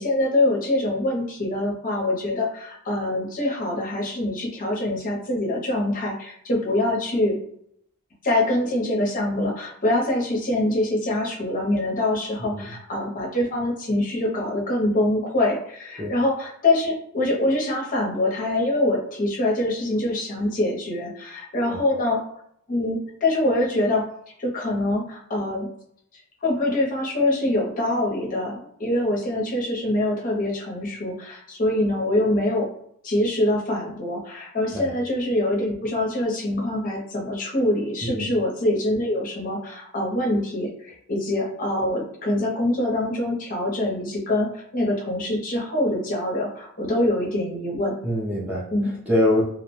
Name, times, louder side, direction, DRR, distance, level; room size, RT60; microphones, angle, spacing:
voice 1, 0.0-7.4 8.2-22.2 22.7-24.0 24.4-25.7 26.4-32.7 33.0-47.9 48.7-48.9, left 1 dB, 40° left, -2 dB, 0.6 m, -24 dB
voice 2, 48.0-48.7 49.1-49.5, left 1 dB, 5° right, -5 dB, 0.4 m, -24 dB
2.4 x 2.1 x 3.0 m, 0.72 s
head